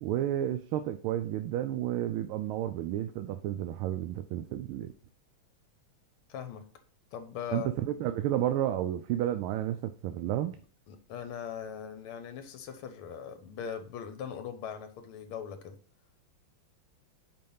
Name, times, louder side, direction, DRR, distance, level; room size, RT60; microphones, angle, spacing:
voice 1, 0.0-4.9 7.5-10.5, right 12 dB, 80° right, 8 dB, 1.4 m, -31 dB
voice 2, 6.3-6.7 7.1-7.7 10.9-15.8, left 8 dB, 80° left, 7 dB, 1.7 m, -40 dB
5.4 x 4.4 x 5.5 m, 0.42 s
omnidirectional pair, 2.4 m